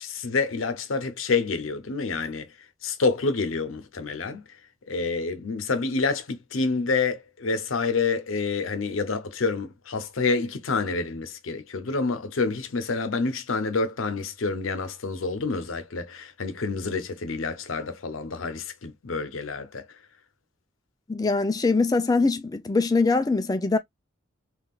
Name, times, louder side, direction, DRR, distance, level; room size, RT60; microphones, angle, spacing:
voice 1, 0.0-2.5 2.8-4.4 4.9-19.9, left 4 dB, 85° left, 0.7 m, -28 dB
voice 2, 21.1-23.8, left 3 dB, 20° left, 0.3 m, -22 dB
3.6 x 2.4 x 2.3 m
head